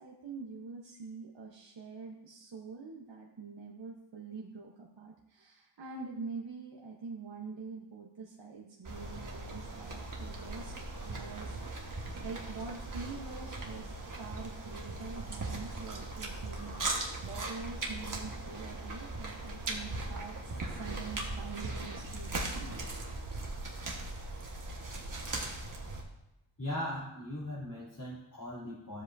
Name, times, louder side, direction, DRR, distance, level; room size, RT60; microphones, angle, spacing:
voice 1, 0.0-10.7 11.0-22.8, right 4 dB, 60° right, -2 dB, 1.2 m, -45 dB
sound 1, 8.8-26.0, right 2 dB, 40° right, 1.5 m, -39 dB
voice 2, 26.6-29.0, left 1 dB, 40° left, -9 dB, 3.5 m, -39 dB
13.0 x 7.6 x 2.7 m, 0.86 s
wide cardioid pair, 90°, 48 cm